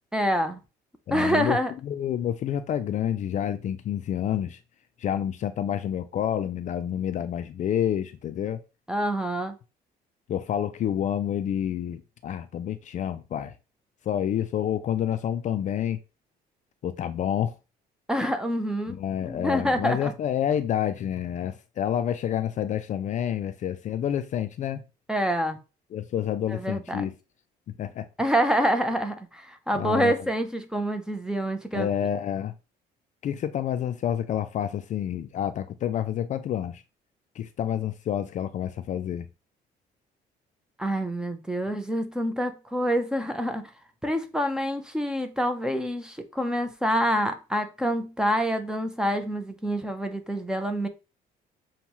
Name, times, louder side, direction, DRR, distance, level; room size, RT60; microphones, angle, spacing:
voice 1, 0.1-0.6 1.1-1.7 8.9-9.5 18.1-20.1 25.1-25.6 26.5-27.1 28.2-31.9 40.8-43.7 44.0-50.9, equal, 5° right, 0.6 m, -27 dB
voice 2, 1.1-1.6 1.8-4.6 5.0-8.6 10.3-13.5 14.1-16.0 16.8-17.5 18.9-24.8 25.9-27.1 27.8-28.1 29.7-30.2 31.7-32.5 33.2-36.8 37.4-39.3, left 10 dB, 45° left, 0.4 m, -28 dB
6.9 x 2.3 x 3.0 m
cardioid pair, 110°, 17 cm